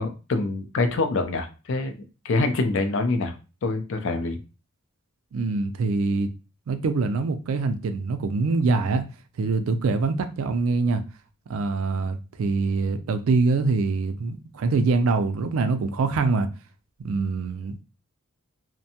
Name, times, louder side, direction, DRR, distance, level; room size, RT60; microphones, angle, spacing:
voice 1, 0.0-2.0 2.2-3.3 3.6-4.4, left 3 dB, 60° left, 0.4 m, -25 dB
voice 2, 5.3-6.3 6.7-9.0 9.4-11.0 11.5-16.5 17.0-17.8, right 3 dB, 75° right, 0.4 m, -24 dB
2.6 x 2.1 x 2.7 m
head